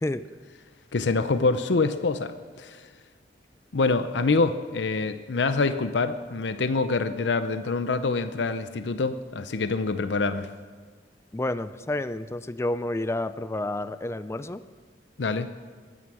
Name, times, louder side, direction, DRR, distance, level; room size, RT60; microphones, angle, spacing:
voice 1, 0.9-2.8 3.7-10.5 15.2-15.5, left 3 dB, 85° left, 11 dB, 0.6 m, -25 dB
voice 2, 11.3-14.6, left 1 dB, 15° left, 13 dB, 0.4 m, -30 dB
21.5 x 9.5 x 6.2 m, 1.5 s
head